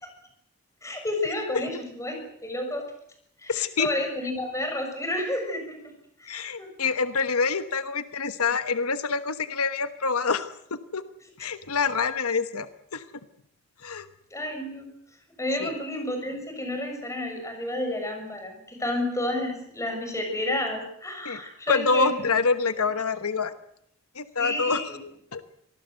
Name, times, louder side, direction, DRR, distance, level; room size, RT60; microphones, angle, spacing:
voice 1, 0.8-2.1 2.4-2.8 3.4-5.8 6.2-6.7 11.4-11.5 14.3-14.9 15.4-22.1 24.4-25.0, left 1 dB, 15° left, 4 dB, 6.7 m, -30 dB
voice 2, 3.5-3.9 6.3-10.5 10.9-11.0 11.4-13.0 13.8-14.1 15.6-15.7 21.2-21.4 21.7-23.5 24.1-24.8 25.3-25.4, left 4 dB, 85° left, 11 dB, 1.2 m, -26 dB
25.5 x 19.5 x 7.9 m, 0.71 s
head